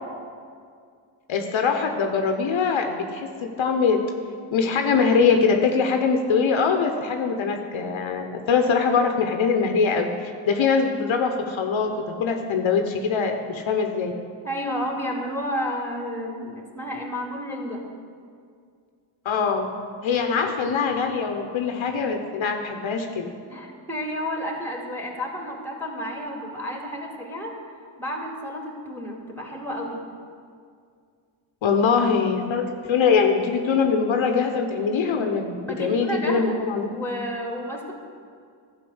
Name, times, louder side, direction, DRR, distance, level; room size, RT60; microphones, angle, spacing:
voice 1, 1.3-4.0 4.5-11.9 12.2-14.1 19.2-19.7 20.0-23.3 31.6-36.9, left 5 dB, 70° left, 5 dB, 1.0 m, -22 dB
voice 2, 14.4-17.8 23.5-27.5 28.0-30.0 35.6-36.6 36.9-37.9, equal, 5° left, 1 dB, 2.3 m, -31 dB
11.5 x 5.4 x 7.9 m, 2.2 s
cardioid pair, 65°, 48 cm